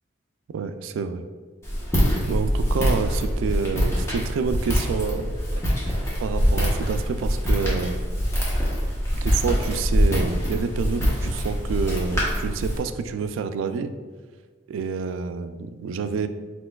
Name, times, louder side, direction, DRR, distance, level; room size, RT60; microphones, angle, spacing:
voice 1, 0.5-1.3 2.3-5.6 6.2-8.0 9.2-13.9 14.7-16.3, right 5 dB, 80° right, 10 dB, 0.3 m, -28 dB
Walk footsteps, 1.6-12.8, equal, 15° left, 0.9 m, -24 dB
4.4 x 4.2 x 2.3 m, 1.4 s
head